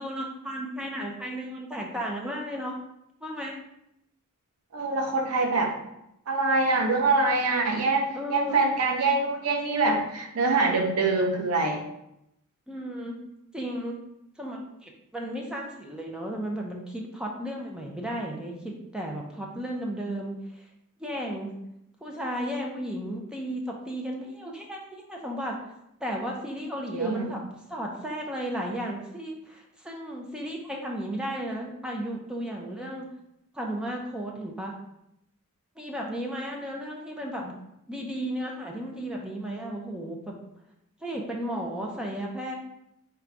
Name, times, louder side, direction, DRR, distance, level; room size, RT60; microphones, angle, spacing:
voice 1, 0.0-2.7 3.2-3.5 8.1-8.6 12.7-13.2 13.5-14.0 14.4-20.6 21.0-21.6 22.0-25.6 26.0-27.4 27.7-33.1 33.5-34.7 35.8-37.6 37.9-40.3 41.0-42.5, equal, 5° right, -1 dB, 0.5 m, -34 dB
voice 2, 4.7-5.7 6.3-11.8 26.9-27.3, right 3 dB, 80° right, 3 dB, 0.6 m, -24 dB
3.8 x 2.3 x 4.5 m, 0.81 s
head